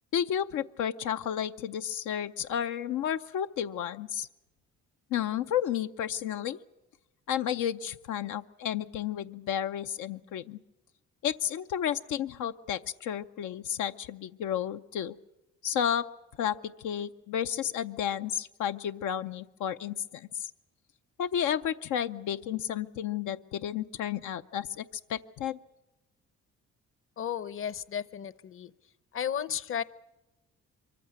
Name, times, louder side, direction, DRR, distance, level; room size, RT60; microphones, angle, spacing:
voice 1, 0.1-4.3 5.1-6.6 7.3-10.6 11.2-15.1 15.6-16.1 16.4-20.5 21.2-24.8 25.1-25.6, left 9 dB, 80° left, 8 dB, 0.7 m, -32 dB
voice 2, 27.2-28.7 29.1-29.8, left 9 dB, 45° left, 18 dB, 0.8 m, -33 dB
23.5 x 14.5 x 9.4 m, 0.99 s
cardioid pair, 90°, 30 cm